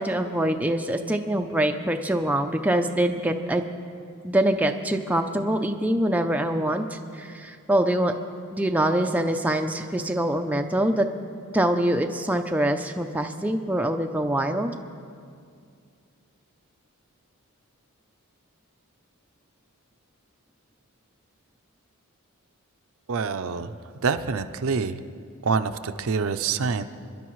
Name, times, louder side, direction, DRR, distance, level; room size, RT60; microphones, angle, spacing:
voice 1, 0.0-3.6 4.2-8.1 8.5-11.1 11.5-14.7, right 1 dB, 5° right, 4 dB, 0.4 m, -24 dB
voice 2, 23.1-23.8 24.0-25.0 25.4-26.8, right 5 dB, 65° right, 10 dB, 0.5 m, -26 dB
26.5 x 11.0 x 3.1 m, 2.3 s
head